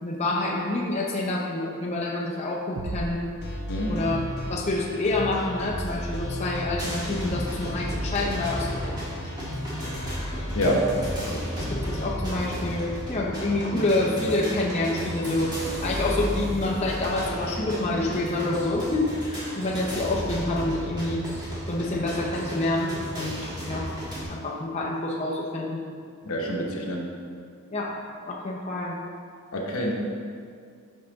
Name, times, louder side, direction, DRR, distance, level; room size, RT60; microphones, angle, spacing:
voice 1, 0.0-3.2 3.9-4.2 4.5-8.7 11.7-15.5 15.8-21.3 21.7-23.9 24.3-25.8 27.7-28.0 28.3-29.0, left 2 dB, 30° left, -3 dB, 0.6 m, -27 dB
sound 1, 2.8-4.5, right 2 dB, 85° right, 0.5 m, -37 dB
sound 2, 3.4-12.1, left 1 dB, 50° left, 1.0 m, -34 dB
sound 3, 6.8-24.2, equal, 20° right, 1.5 m, -34 dB
voice 2, 10.6-10.9 11.3-11.5 26.2-27.0 29.5-29.9, equal, 75° left, 0 dB, 0.9 m, -26 dB
5.7 x 5.5 x 3.9 m, 2.3 s
head